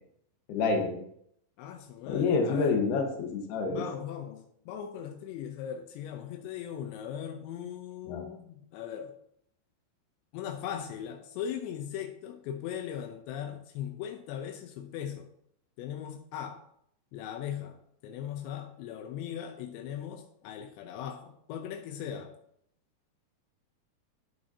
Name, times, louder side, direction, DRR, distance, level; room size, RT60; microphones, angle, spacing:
voice 1, 0.5-1.0 2.1-3.8 8.1-8.2, left 4 dB, 70° left, 3 dB, 3.3 m, -28 dB
voice 2, 1.6-2.8 3.7-9.1 10.3-15.3 15.8-16.6 17.1-17.8 18.0-22.3, left 9 dB, 85° left, 4 dB, 3.0 m, -39 dB
11.0 x 9.5 x 2.8 m, 0.70 s
omnidirectional pair, 5.0 m